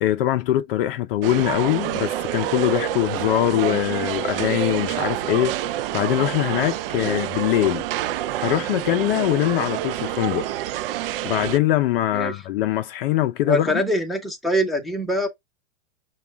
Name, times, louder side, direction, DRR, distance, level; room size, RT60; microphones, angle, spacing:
voice 1, 0.0-7.8 8.4-10.5 11.2-13.7, left 13 dB, 50° left, 0.6 m, -22 dB
sound 1, 1.2-11.6, right 12 dB, 50° right, 0.4 m, -27 dB
voice 2, 13.4-15.3, equal, ahead, 0.8 m, -24 dB
5.9 x 2.4 x 3.4 m
hypercardioid pair, 125°, 37 cm